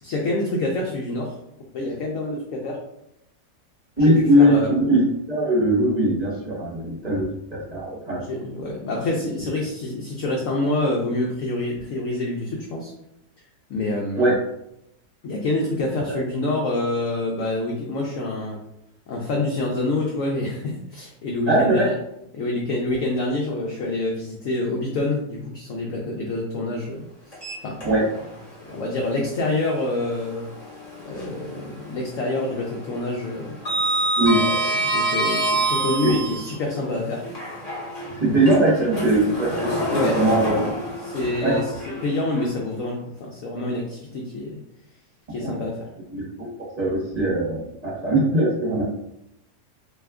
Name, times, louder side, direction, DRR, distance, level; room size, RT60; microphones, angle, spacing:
voice 1, 0.0-1.4 1.7-2.8 4.0-4.7 8.2-12.9 13.7-14.3 15.2-18.6 19.1-22.0 22.3-27.0 27.3-27.8 28.7-30.5 31.1-34.1 34.3-37.2 39.9-40.2 41.0-44.6 45.3-45.9, left 2 dB, 70° left, -1 dB, 0.8 m, -27 dB
voice 2, 4.0-8.2 9.4-9.5 14.2-14.3 16.1-16.2 21.5-21.9 27.8-28.0 34.2-34.4 36.0-36.1 38.2-39.7 40.1-40.7 41.4-41.6 45.4-45.7 46.1-46.5 46.8-48.8, right 1 dB, 30° right, -6 dB, 0.8 m, -20 dB
Sliding door, 27.3-28.3 28.7-28.8 30.5-31.5 31.8-32.2 32.5-36.6 37.2-42.4, right 1 dB, 25° left, 1.0 m, -26 dB
2.7 x 2.3 x 3.4 m, 0.80 s
omnidirectional pair, 1.8 m